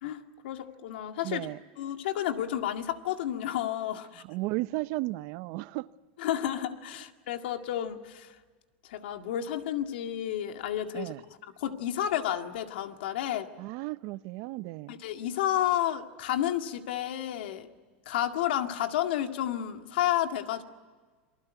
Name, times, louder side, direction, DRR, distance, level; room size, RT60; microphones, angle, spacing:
voice 1, 0.0-1.5 1.8-4.2 6.2-8.4 8.8-11.1 11.6-13.5 14.9-17.7 18.1-20.6, left 11 dB, 80° left, 2.0 m, -31 dB
voice 2, 1.2-1.6 4.2-5.9 10.9-11.2 13.6-14.9, right 20 dB, 55° right, 0.7 m, -34 dB
28.0 x 20.5 x 9.3 m
supercardioid pair, 135°, 5 cm